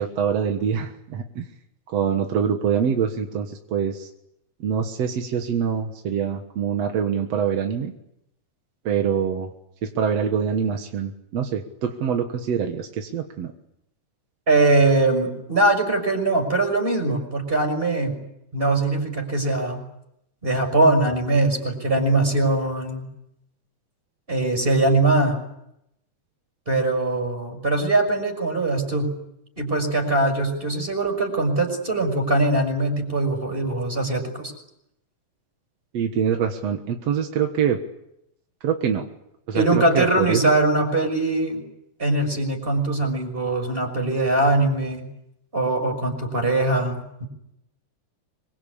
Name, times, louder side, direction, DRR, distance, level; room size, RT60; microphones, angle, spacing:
voice 1, 0.0-1.5 1.9-4.1 4.6-7.9 8.8-9.5 9.8-13.5 35.9-37.8 38.6-39.1 39.5-40.4, right 7 dB, 60° right, 4 dB, 2.5 m, -24 dB
voice 2, 14.5-18.2 18.5-19.8 20.4-23.1 24.3-25.4 26.7-29.2 29.6-34.5 39.5-41.6 42.0-45.1 45.5-47.3, right 2 dB, 15° right, 4 dB, 6.2 m, -21 dB
26.0 x 23.5 x 8.6 m, 0.81 s
omnidirectional pair, 3.6 m